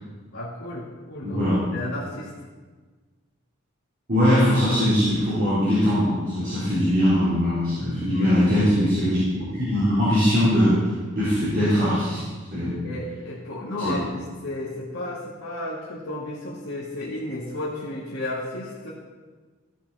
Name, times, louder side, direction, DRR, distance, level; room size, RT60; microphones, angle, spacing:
voice 1, 0.3-1.4 1.7-2.3 8.1-8.7 12.8-18.9, left 1 dB, 75° left, -8 dB, 2.1 m, -33 dB
voice 2, 1.2-1.5 4.1-10.8 11.2-12.2 12.5-12.7 13.8-13.9, equal, 45° right, -11 dB, 3.8 m, -21 dB
15.5 x 7.4 x 4.1 m, 1.4 s
head